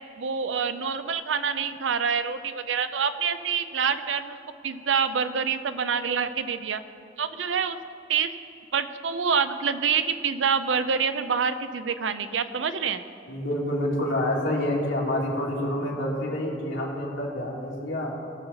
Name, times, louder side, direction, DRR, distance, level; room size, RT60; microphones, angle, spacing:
voice 1, 0.2-4.4 4.6-6.8 7.2-7.8 8.1-8.3 8.7-13.0, right 6 dB, 90° right, 11 dB, 0.6 m, -26 dB
voice 2, 13.3-18.2, left 1 dB, 85° left, -4 dB, 2.5 m, -28 dB
19.5 x 6.9 x 4.0 m, 2.7 s
head